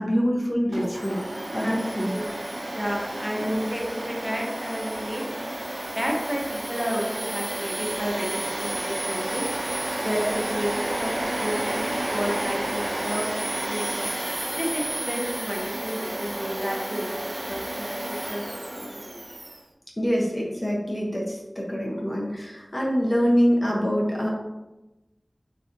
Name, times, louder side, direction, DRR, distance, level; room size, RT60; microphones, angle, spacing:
voice 1, 0.0-2.1 3.4-3.7 20.0-24.3, equal, 35° left, -3 dB, 0.6 m, -25 dB
Domestic sounds home sounds, 0.7-19.6, right 1 dB, 65° right, 0.3 m, -31 dB
voice 2, 1.6-5.5 5.9-9.4 10.0-11.1 11.4-14.1 14.5-17.1 17.5-18.0 18.3-18.4 18.7-19.1, equal, 5° right, -2 dB, 0.6 m, -31 dB
3.3 x 2.5 x 2.5 m, 1.0 s
wide cardioid pair, 50°, 0 cm